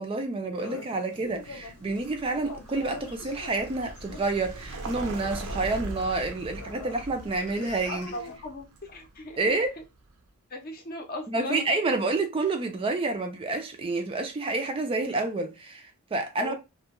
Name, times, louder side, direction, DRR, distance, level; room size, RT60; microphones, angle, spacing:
voice 1, 0.0-8.1 9.4-9.7 11.3-16.5, right 3 dB, 25° right, 0.3 m, -29 dB
sound 1, 0.6-8.4, left 3 dB, 85° left, 0.6 m, -46 dB
Vehicle, 1.3-10.1, right 2 dB, 75° right, 0.5 m, -41 dB
voice 2, 7.7-9.5 10.5-11.7 16.4-16.6, left 1 dB, 40° left, 0.6 m, -37 dB
2.2 x 2.1 x 2.9 m
head